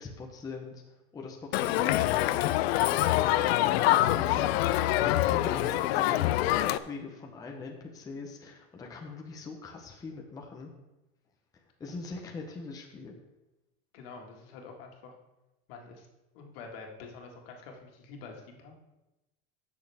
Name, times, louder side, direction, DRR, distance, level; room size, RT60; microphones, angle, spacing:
voice 1, 0.0-4.6 4.9-10.7 11.5-13.2, left 4 dB, 10° left, 1 dB, 0.8 m, -42 dB
Crowd, 1.5-6.8, left 15 dB, 90° left, 0.5 m, -25 dB
voice 2, 13.9-15.1 15.7-16.1 16.3-18.8, left 4 dB, 70° left, 2 dB, 1.9 m, -47 dB
15.0 x 6.4 x 3.5 m, 1.0 s
supercardioid pair, 160°, 31 cm